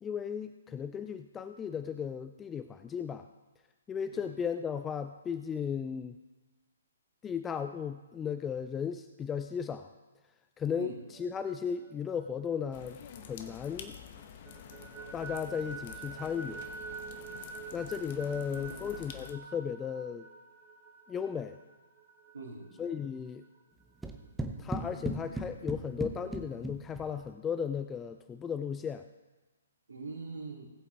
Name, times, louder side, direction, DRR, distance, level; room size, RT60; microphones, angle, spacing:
voice 1, 0.0-3.3 3.9-6.2 7.2-9.9 10.6-13.0 13.3-14.0 15.1-16.6 17.7-20.3 21.1-21.6 22.8-23.4 24.6-29.1, left 7 dB, 10° left, 9 dB, 0.3 m, -35 dB
sound 1, 11.0-13.8 14.2-23.6, right 5 dB, 20° right, 2.4 m, -48 dB
sound 2, 12.7-19.3, left 8 dB, 35° left, 1.0 m, -48 dB
voice 2, 18.3-19.0 22.3-22.7 29.9-30.6, right 3 dB, 65° right, -2 dB, 2.8 m, -43 dB
sound 3, 24.0-27.3, right 2 dB, 5° right, 0.8 m, -38 dB
19.5 x 8.3 x 3.4 m, 1.2 s
figure-of-eight pair, 130°, 0 cm